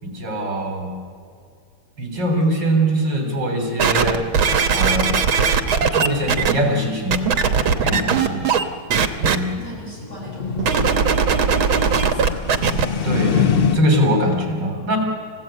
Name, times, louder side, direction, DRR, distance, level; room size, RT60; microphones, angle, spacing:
voice 1, 0.0-1.0 2.0-4.3 4.7-5.1 5.8-7.2 7.8-8.5 9.2-9.5 13.0-15.0, right 1 dB, 60° right, 3 dB, 3.9 m, -22 dB
sound 1, 3.8-6.5 7.1-8.6 8.9-9.4 10.6-12.9 13.5-13.6, right 6 dB, 85° right, 2.0 m, -18 dB
sound 2, 9.6-13.8, left 7 dB, 85° left, 0.5 m, -25 dB
voice 2, 9.6-12.9, right 1 dB, 40° left, -4 dB, 8.4 m, -39 dB
29.0 x 15.5 x 8.9 m, 2.3 s
omnidirectional pair, 2.2 m